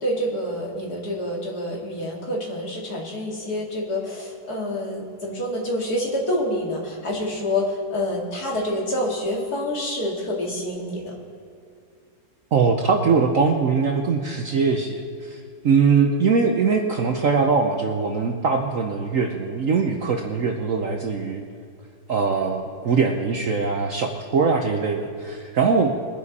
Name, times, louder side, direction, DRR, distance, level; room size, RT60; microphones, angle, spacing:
voice 1, 0.0-11.1, left 1 dB, 55° left, -2 dB, 2.8 m, -27 dB
voice 2, 12.5-21.4 22.1-25.9, right 5 dB, 55° right, 3 dB, 1.0 m, -22 dB
22.0 x 9.7 x 4.2 m, 2.2 s
omnidirectional pair, 2.0 m